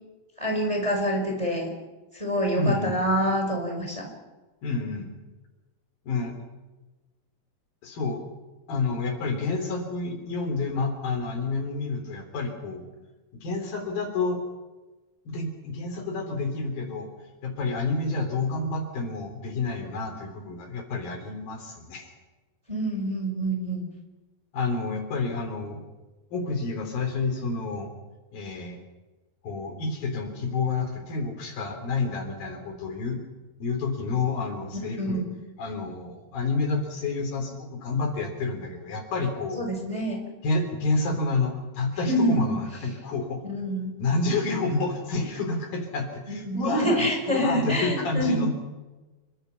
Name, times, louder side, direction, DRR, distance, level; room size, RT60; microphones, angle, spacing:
voice 1, 0.4-1.7 2.1-4.1 22.7-23.8 34.7-35.3 39.5-40.2 42.0-42.6 43.4-43.9 46.3-48.5, equal, 10° right, 2 dB, 4.5 m, -26 dB
voice 2, 2.6-3.0 4.6-5.1 6.0-6.4 7.8-8.2 8.7-12.9 13.3-14.4 15.3-17.1 17.4-22.1 24.5-25.8 26.3-27.9 28.3-28.8 29.4-33.2 33.6-35.2 35.6-39.7 40.4-43.4 44.0-48.5, left 3 dB, 65° left, 5 dB, 5.1 m, -29 dB
28.0 x 24.0 x 5.8 m, 1.2 s
omnidirectional pair, 4.5 m